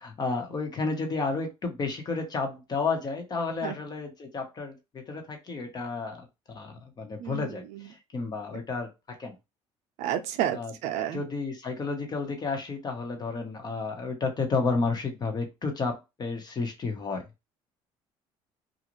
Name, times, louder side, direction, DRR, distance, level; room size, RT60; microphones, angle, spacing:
voice 1, 0.0-8.9 9.2-9.3 10.5-10.7 11.1-17.2, left 4 dB, 35° left, 1.1 m, -31 dB
voice 2, 7.2-7.9 10.0-11.2, right 11 dB, 80° right, 0.6 m, -31 dB
2.6 x 2.4 x 3.0 m
cardioid pair, 110°, 11 cm